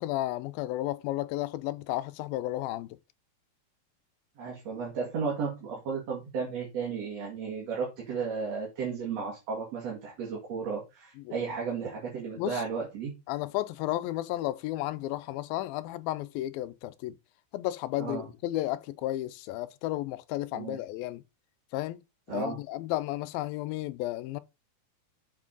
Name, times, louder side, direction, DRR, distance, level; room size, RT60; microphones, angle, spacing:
voice 1, 0.0-3.0 11.2-11.3 12.4-12.6 13.3-17.2 17.5-21.2 21.7-22.0 22.3-24.4, left 15 dB, 85° left, 2.4 m, -33 dB
voice 2, 4.4-13.1 18.0-18.2 20.5-20.8 22.3-22.6, right 5 dB, 50° right, 3.0 m, -34 dB
7.6 x 6.2 x 3.9 m
omnidirectional pair, 4.1 m